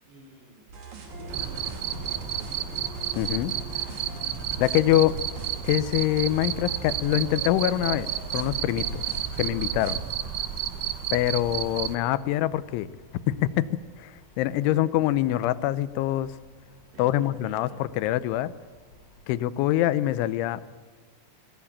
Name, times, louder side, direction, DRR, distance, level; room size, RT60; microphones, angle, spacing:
voice 1, 0.1-0.7 1.1-3.3 4.5-5.0 14.4-15.0 16.9-17.8, equal, 65° right, 0 dB, 6.8 m, -49 dB
sound 1, 0.7-9.5 9.8-10.0, right 2 dB, 45° right, 3.5 m, -41 dB
sound 2, 1.1-19.5, left 2 dB, 55° left, 3.4 m, -48 dB
Cricket, 1.3-12.0, right 11 dB, 90° right, 1.8 m, -32 dB
voice 2, 3.2-3.5 4.6-5.2 5.6-8.1 8.3-9.1 9.4-10.0 11.1-12.9 13.3-13.7 14.0-16.4 17.0-17.7 18.0-18.5 19.3-20.7, left 14 dB, 90° left, 16 dB, 3.2 m, -24 dB
23.0 x 16.5 x 8.7 m, 1.5 s
omnidirectional pair, 5.3 m